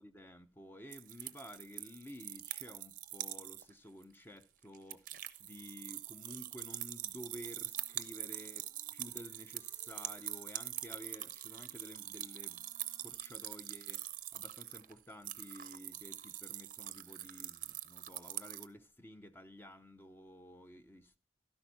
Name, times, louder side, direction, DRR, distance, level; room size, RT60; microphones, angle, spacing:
voice 1, 0.0-14.1 14.3-21.2, equal, 10° left, 0.5 m, -52 dB
sound 1, 0.9-3.7 4.0-4.1 4.4-18.7, right 14 dB, 45° right, 0.5 m, -44 dB
sound 2, 7.7-13.4, equal, 85° left, 1.7 m, -69 dB
12.5 x 10.5 x 2.7 m
head